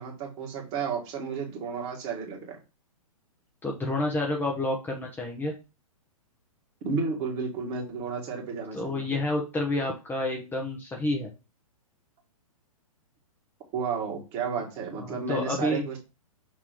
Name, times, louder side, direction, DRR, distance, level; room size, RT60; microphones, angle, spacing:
voice 1, 0.0-2.6 6.8-9.1 13.7-16.0, right 5 dB, 35° right, 1 dB, 1.9 m, -32 dB
voice 2, 3.6-5.5 8.7-11.3 15.0-15.9, left 2 dB, 10° left, 1 dB, 1.1 m, -29 dB
6.3 x 3.0 x 5.0 m, 0.30 s
hypercardioid pair, 120°, 19 cm